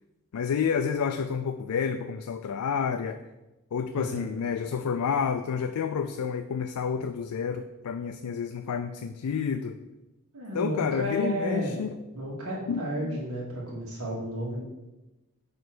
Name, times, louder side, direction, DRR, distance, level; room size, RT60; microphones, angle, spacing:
voice 1, 0.3-3.2 3.7-9.8 10.5-12.0 12.7-13.2, left 6 dB, 80° left, 8 dB, 0.4 m, -29 dB
voice 2, 3.9-4.3 10.3-11.8 12.1-14.6, equal, 80° right, -5 dB, 2.2 m, -32 dB
5.3 x 4.5 x 6.1 m, 1.0 s
head